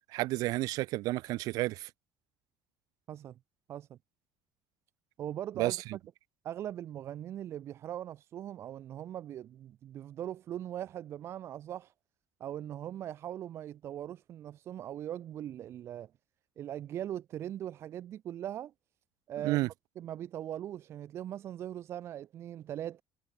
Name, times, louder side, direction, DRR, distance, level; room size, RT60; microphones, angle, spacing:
voice 1, 0.1-1.9 5.6-5.8 19.4-19.7, right 19 dB, 65° right, 1.5 m, -31 dB
voice 2, 3.1-3.4 3.7-4.0 5.2-6.0 6.4-11.9 12.4-16.1 16.6-18.7 19.3-23.0, right 11 dB, 40° right, 0.8 m, -40 dB
cardioid pair, 155°, 7 cm